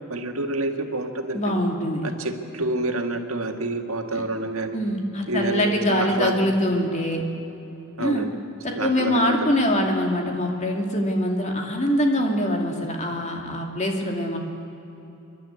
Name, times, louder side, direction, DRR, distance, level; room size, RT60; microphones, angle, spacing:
voice 1, 0.0-1.5 2.0-4.8 5.3-6.3 8.0-8.3 8.7-9.4, right 2 dB, 80° right, 5 dB, 1.8 m, -28 dB
voice 2, 1.3-2.0 4.1-4.2 4.7-7.2 8.0-8.2 8.6-14.4, left 1 dB, 35° left, 2 dB, 2.6 m, -24 dB
27.5 x 11.5 x 9.7 m, 3.0 s
head